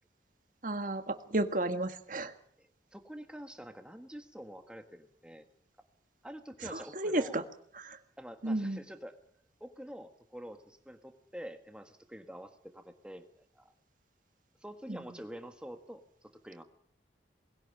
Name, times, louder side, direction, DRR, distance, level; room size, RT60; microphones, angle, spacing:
voice 1, 0.6-2.3 6.6-7.4 7.7-8.0 8.4-8.8 14.9-15.2, right 1 dB, 45° right, 8 dB, 1.7 m, -33 dB
voice 2, 2.6-5.5 6.2-7.4 8.2-9.1 9.6-13.7 14.6-16.6, equal, 5° right, 7 dB, 1.4 m, -47 dB
21.0 x 17.0 x 8.7 m, 0.68 s
head